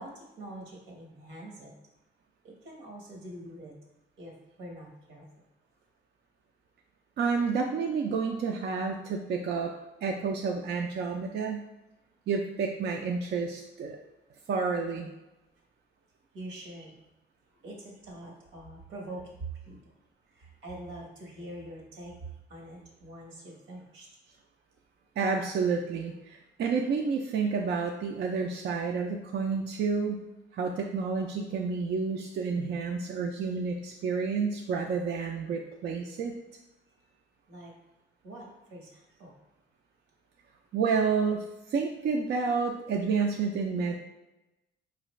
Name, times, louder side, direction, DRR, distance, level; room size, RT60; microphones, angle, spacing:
voice 1, 0.0-1.7 2.4-3.7 4.2-5.3 16.3-17.0 17.5-19.9 20.3-24.1 36.9-37.0 37.5-37.7 38.2-39.3, right 2 dB, 85° right, -1 dB, 1.2 m, -44 dB
voice 2, 7.2-9.7 10.0-11.6 12.3-14.0 14.5-15.1 25.2-30.3 30.5-36.3 40.7-43.9, right 5 dB, 60° right, 2 dB, 0.4 m, -30 dB
4.7 x 2.5 x 3.1 m, 0.97 s
cardioid pair, 90°, 20 cm